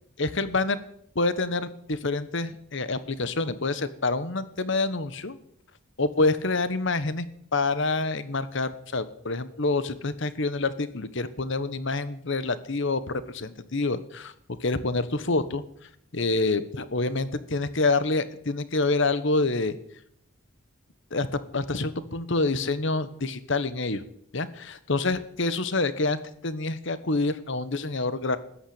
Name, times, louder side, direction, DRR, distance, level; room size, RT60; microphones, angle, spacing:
voice 1, 0.2-0.8 1.1-5.4 6.0-7.3 7.5-14.3 14.6-15.6 16.1-19.8 21.1-21.3 21.5-24.0 24.3-28.4, left 3 dB, 60° left, 14 dB, 1.2 m, -27 dB
14.0 x 11.5 x 8.8 m, 0.69 s
head